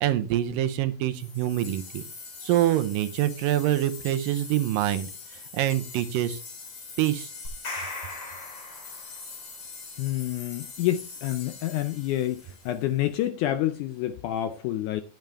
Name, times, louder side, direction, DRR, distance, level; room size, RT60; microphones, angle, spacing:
voice 1, 0.0-2.0 2.4-5.1 5.5-6.4 7.0-7.3, right 13 dB, 80° right, 2.5 m, -25 dB
sound 1, 1.1-13.2, left 4 dB, 60° left, 4.6 m, -43 dB
sound 2, 7.5-9.4, left 2 dB, 40° left, 4.5 m, -38 dB
voice 2, 10.0-15.0, left 13 dB, 80° left, 1.8 m, -28 dB
10.5 x 9.1 x 3.4 m
omnidirectional pair, 4.1 m